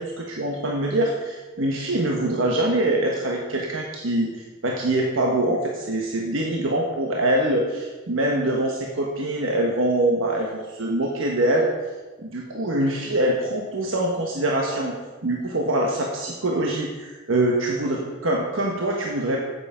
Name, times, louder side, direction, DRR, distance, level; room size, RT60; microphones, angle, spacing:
voice 1, 0.0-11.7 12.2-14.9 15.2-19.5, right 1 dB, 90° right, 0 dB, 1.2 m, -24 dB
9.9 x 8.3 x 5.0 m, 1.2 s
head